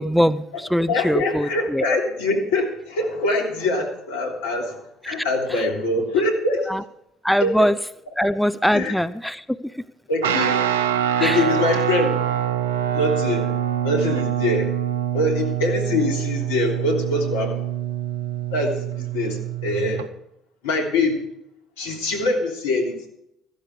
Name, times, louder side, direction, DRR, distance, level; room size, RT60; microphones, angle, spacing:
voice 1, 0.0-1.8 6.7-6.8 7.2-7.7 8.2-9.4 11.2-11.4, equal, ahead, 15 dB, 0.6 m, -21 dB
voice 2, 0.9-4.8 5.1-6.7 7.4-7.7 8.2-8.3 8.7-9.0 10.1-10.6 11.2-12.1 12.9-13.5 13.8-14.7 15.1-17.6 18.5-20.0 20.6-21.2 21.8-23.1, left 2 dB, 75° left, 2 dB, 3.3 m, -23 dB
Guitar, 10.2-20.1, right 10 dB, 80° right, 0.7 m, -25 dB
15.0 x 12.5 x 5.0 m, 0.78 s
hypercardioid pair, 55°, 0 cm